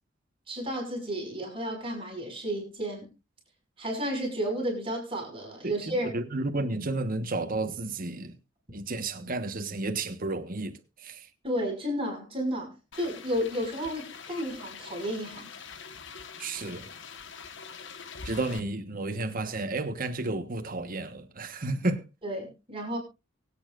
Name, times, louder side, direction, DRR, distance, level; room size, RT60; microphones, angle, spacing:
voice 1, 0.5-3.1 3.8-6.1 11.4-15.5 22.2-23.0, equal, 30° right, 5.7 m, -32 dB
voice 2, 5.6-8.4 8.7-11.3 16.4-16.9 18.2-22.1, right 2 dB, 45° right, 1.3 m, -32 dB
sound 1, 12.9-18.6, left 5 dB, 65° left, 1.4 m, -44 dB
24.0 x 8.7 x 2.5 m
head